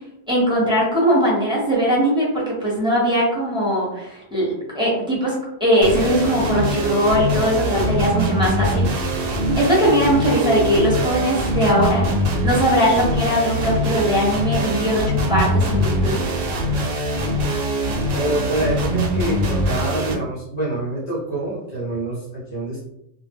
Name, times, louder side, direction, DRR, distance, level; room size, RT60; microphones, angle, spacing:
voice 1, 0.3-5.3 5.6-9.1 9.4-12.1 12.4-16.2, equal, 5° right, -7 dB, 0.8 m, -20 dB
sound 1, 5.8-20.1, right 1 dB, 60° right, 0.7 m, -22 dB
voice 2, 18.1-22.8, right 1 dB, 55° left, -7 dB, 0.9 m, -26 dB
2.1 x 2.1 x 3.4 m, 0.84 s
omnidirectional pair, 1.2 m